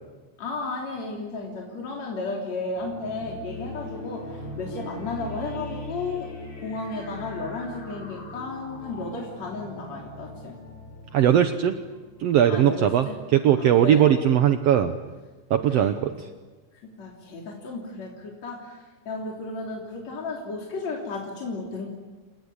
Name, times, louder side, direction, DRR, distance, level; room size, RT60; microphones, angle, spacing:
voice 1, 0.4-4.2 4.6-6.3 6.6-10.5 12.4-13.2 13.6-14.2 15.7-15.9 16.8-18.8 19.1-21.9, left 3 dB, 65° left, -1 dB, 4.5 m, -33 dB
sound 1, 2.7-12.9, left 2 dB, 45° left, 6.7 m, -40 dB
voice 2, 11.1-11.8 12.2-14.9 15.5-16.3, right 10 dB, 65° right, 8 dB, 1.9 m, -20 dB
29.0 x 18.5 x 9.7 m, 1.3 s
omnidirectional pair, 3.3 m